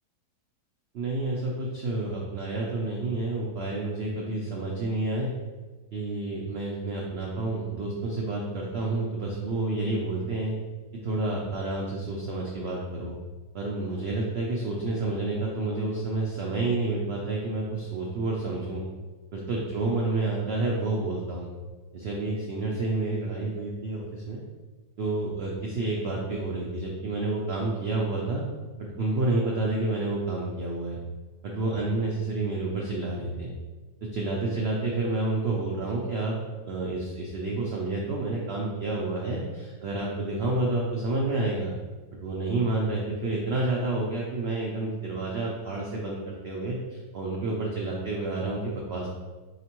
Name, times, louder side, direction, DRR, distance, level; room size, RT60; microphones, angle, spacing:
voice 1, 0.9-5.3 5.9-10.5 11.0-13.2 13.5-18.8 19.3-21.5 21.9-24.4 25.0-28.4 28.8-31.0 31.4-33.5 34.0-41.7 42.2-49.1, right 2 dB, 85° right, -2 dB, 0.5 m, -29 dB
4.2 x 2.9 x 2.9 m, 1.3 s
omnidirectional pair, 1.7 m